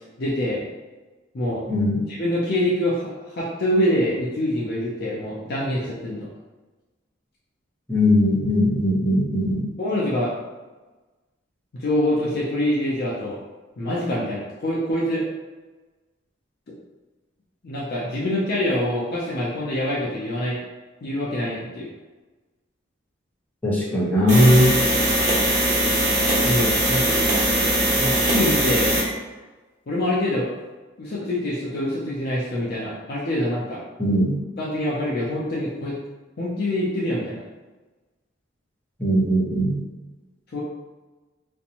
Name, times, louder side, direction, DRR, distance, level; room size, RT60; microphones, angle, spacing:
voice 1, 0.2-0.6 1.3-1.6 2.2-6.3 9.8-10.3 11.7-13.4 13.8-15.2 17.6-20.6 21.0-21.9 26.4-27.2 28.0-28.9 29.9-30.5 31.0-33.8 34.6-36.0 36.4-37.4 40.5-40.6, left 1 dB, 55° left, -6 dB, 0.5 m, -25 dB
voice 2, 1.7-2.1 7.9-9.7 23.6-24.8 34.0-34.4 39.0-39.8, equal, 10° left, -7 dB, 0.6 m, -19 dB
sound 1, 24.3-29.1, right 1 dB, 35° right, 1.1 m, -21 dB
2.5 x 2.1 x 2.8 m, 1.2 s
head